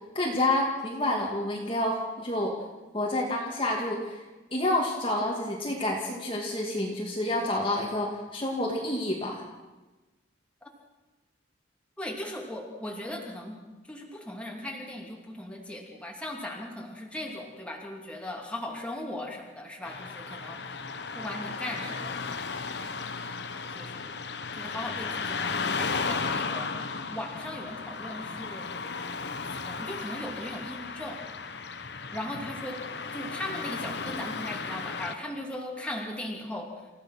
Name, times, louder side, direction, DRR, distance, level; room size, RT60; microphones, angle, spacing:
voice 1, 0.1-2.6 2.9-4.2 4.5-9.4, left 1 dB, 30° left, -1 dB, 2.4 m, -28 dB
voice 2, 12.0-13.6 13.9-20.8 21.1-22.1 22.5-23.0 23.7-24.2 24.6-26.7 27.1-28.6 29.5-31.2 32.1-32.8 33.1-36.7, left 1 dB, 5° left, -1 dB, 2.9 m, -38 dB
Car passing by / Traffic noise roadway noise, 19.8-35.2, left 4 dB, 60° left, 1.1 m, -35 dB
28.5 x 15.5 x 6.2 m, 1.2 s
head